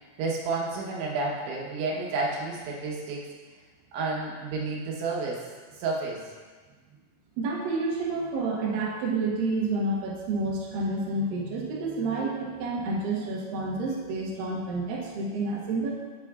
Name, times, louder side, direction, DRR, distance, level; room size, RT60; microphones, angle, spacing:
voice 1, 0.2-3.3 3.9-5.4 5.8-6.2, right 3 dB, 75° right, -3 dB, 3.2 m, -30 dB
voice 2, 7.4-15.9, right 3 dB, 90° right, -3 dB, 2.0 m, -29 dB
8.6 x 8.6 x 2.4 m, 1.4 s
omnidirectional pair, 6.0 m